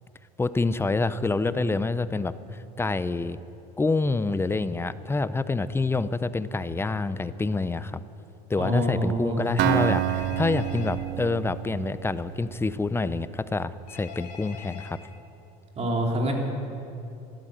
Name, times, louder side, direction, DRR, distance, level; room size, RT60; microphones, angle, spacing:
voice 1, 0.4-2.3 2.8-3.4 3.8-8.0 8.5-15.0, left 3 dB, 10° left, 15 dB, 0.6 m, -27 dB
voice 2, 8.6-9.9 15.7-16.3, right 1 dB, 30° right, 0 dB, 3.4 m, -27 dB
Acoustic guitar, 9.6-13.4, right 14 dB, 60° right, 0.7 m, -29 dB
Telephone, 9.8-11.0 13.9-14.9, left 8 dB, 85° left, 2.0 m, -43 dB
13.0 x 12.5 x 8.0 m, 2.7 s
supercardioid pair, 90°, 20 cm